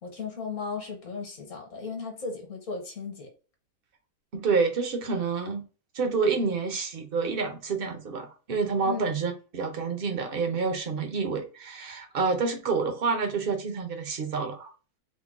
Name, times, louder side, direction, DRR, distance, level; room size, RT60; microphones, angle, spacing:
voice 1, 0.0-3.3 8.8-9.1, left 4 dB, 55° left, 1.4 m, -36 dB
voice 2, 4.3-5.6 5.9-14.7, right 4 dB, 50° right, 0.7 m, -28 dB
3.7 x 2.2 x 3.6 m
omnidirectional pair, 1.6 m